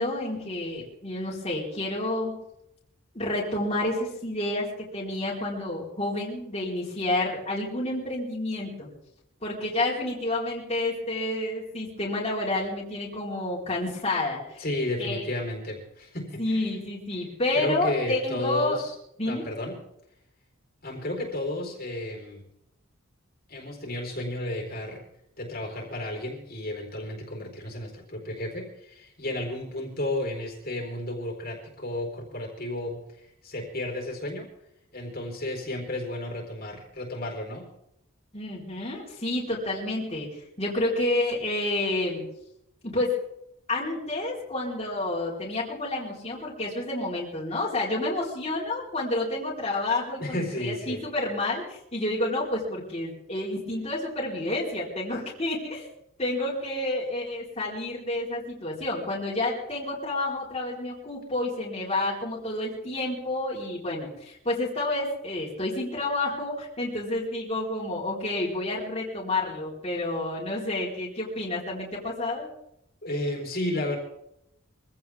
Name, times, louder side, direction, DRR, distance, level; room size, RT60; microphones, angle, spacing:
voice 1, 0.0-2.4 3.1-8.9 9.4-14.6 15.0-15.2 16.4-18.8 19.2-19.5 38.3-42.2 42.8-43.2 43.7-55.9 56.2-72.5, left 2 dB, 30° left, -5 dB, 4.1 m, -29 dB
voice 2, 14.6-16.7 17.5-19.0 19.3-19.8 20.8-22.4 23.5-25.0 25.4-34.5 34.9-37.7 50.2-51.0 73.0-74.0, left 1 dB, 45° left, 1 dB, 4.3 m, -32 dB
24.5 x 16.5 x 3.6 m, 0.78 s
head